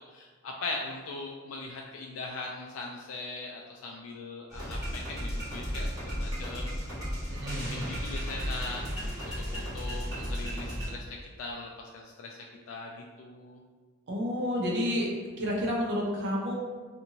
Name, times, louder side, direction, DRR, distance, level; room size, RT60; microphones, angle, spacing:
voice 1, 0.1-6.7 7.7-12.4 12.7-13.6, left 3 dB, 85° left, 0 dB, 0.3 m, -40 dB
sound 1, 4.5-10.9, equal, 20° right, 1.4 m, -34 dB
voice 2, 7.3-7.9 14.1-15.1 15.4-16.5, equal, 60° right, -2 dB, 0.6 m, -30 dB
2.7 x 2.5 x 2.8 m, 1.5 s
head